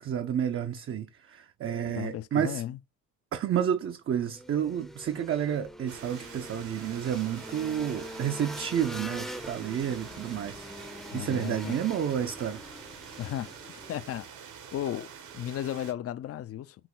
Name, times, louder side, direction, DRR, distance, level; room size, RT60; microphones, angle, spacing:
voice 1, 0.0-2.6 3.3-12.6, right 9 dB, 45° right, 0.6 m, -30 dB
voice 2, 1.8-2.8 11.1-11.8 13.2-13.5 13.9-14.3 14.7-16.8, left 12 dB, 50° left, 0.5 m, -35 dB
sound 1, 4.3-14.1, equal, ahead, 0.6 m, -44 dB
sound 2, 5.9-15.9, right 7 dB, 75° right, 1.4 m, -46 dB
6.0 x 2.3 x 3.7 m
cardioid pair, 90°, 30 cm